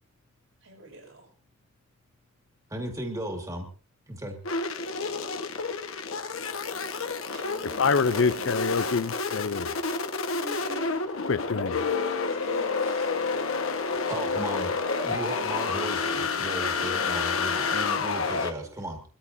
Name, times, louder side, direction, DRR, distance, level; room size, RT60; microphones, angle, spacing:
voice 1, 0.6-1.3 7.3-8.5 10.2-11.2 12.3-13.3 18.1-18.8, right 3 dB, 75° right, 5.9 m, -43 dB
voice 2, 2.7-3.6 4.1-4.4 14.1-14.7 15.0-19.0, right 1 dB, 15° right, 2.1 m, -35 dB
sound 1, 4.4-18.5, left 4 dB, 80° left, 1.4 m, -29 dB
voice 3, 7.6-9.7 11.2-11.8 17.7-17.8, left 5 dB, 65° left, 0.5 m, -26 dB
23.0 x 14.0 x 2.7 m
head